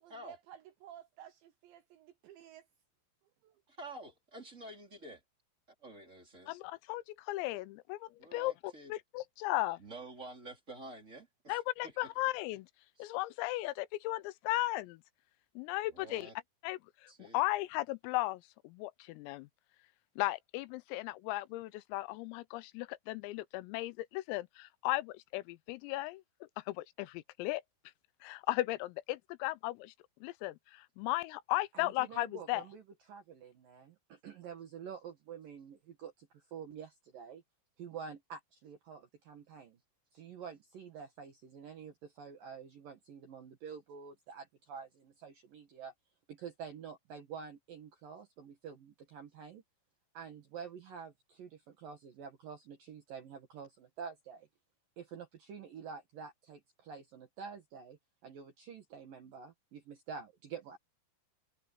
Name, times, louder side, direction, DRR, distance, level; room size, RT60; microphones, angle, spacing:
voice 1, 0.0-2.7 3.4-3.8, right 11 dB, 75° right, 2.7 m, -54 dB
voice 2, 3.7-5.2 5.8-6.5 8.2-8.9 9.8-11.9 13.0-13.2 15.9-16.3 17.1-17.4, right 2 dB, 15° right, 3.5 m, -49 dB
voice 3, 6.5-9.8 11.5-12.7 13.0-15.0 15.6-16.3 16.6-19.5 20.2-27.6 28.2-29.9 30.2-32.7, left 18 dB, 85° left, 3.4 m, -36 dB
voice 4, 31.7-32.8 33.1-37.4 37.8-39.8 40.1-45.9 46.3-49.6 50.1-54.5 55.0-60.8, right 6 dB, 60° right, 2.5 m, -48 dB
omnidirectional pair, 6.0 m